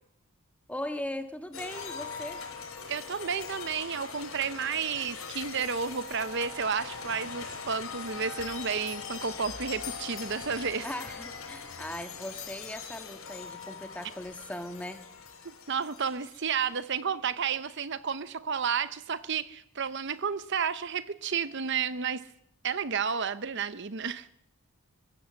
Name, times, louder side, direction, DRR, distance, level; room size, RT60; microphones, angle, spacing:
voice 1, 0.7-2.4 10.8-15.0, left 1 dB, 5° left, 7 dB, 1.6 m, -39 dB
sound 1, 1.5-16.6, left 5 dB, 70° left, 4.4 m, -41 dB
voice 2, 2.9-10.9 15.7-22.3 22.6-24.3, right 6 dB, 55° right, 14 dB, 0.7 m, -31 dB
23.0 x 15.5 x 7.7 m, 0.74 s
head